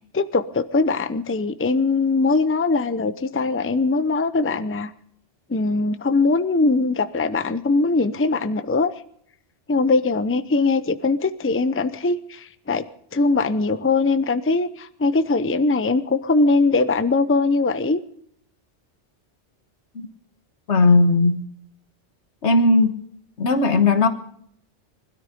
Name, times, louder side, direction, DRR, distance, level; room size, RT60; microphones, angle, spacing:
voice 1, 0.1-4.9 5.5-8.9 9.7-12.9 13.1-18.0, left 3 dB, 15° left, 0.6 m, -21 dB
voice 2, 20.7-21.4 22.4-23.0 23.4-24.1, left 3 dB, 75° left, 1.7 m, -17 dB
20.5 x 13.0 x 5.3 m
omnidirectional pair, 1.2 m